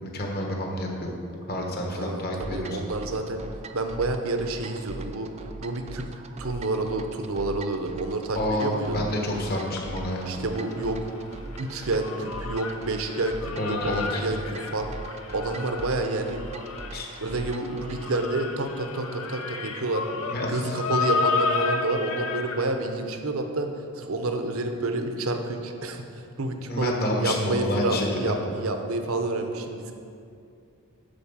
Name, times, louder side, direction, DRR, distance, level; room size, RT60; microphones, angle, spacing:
voice 1, 0.0-1.1 1.5-2.8 8.3-10.3 13.5-14.2 16.9-17.1 20.3-20.7 26.7-28.3, left 1 dB, 45° left, 0 dB, 1.3 m, -29 dB
voice 2, 1.9-3.4 3.7-5.3 5.6-6.1 6.4-9.0 10.2-11.0 11.6-14.9 15.3-16.4 17.2-20.1 20.5-23.7 24.0-26.0 26.4-29.9, right 2 dB, 70° right, 6 dB, 0.8 m, -29 dB
sound 1, 2.4-18.3, right 2 dB, 30° right, 0.4 m, -41 dB
sound 2, 8.9-10.9 11.2-22.7, left 4 dB, 75° left, 0.7 m, -32 dB
10.5 x 4.4 x 7.3 m, 2.5 s
head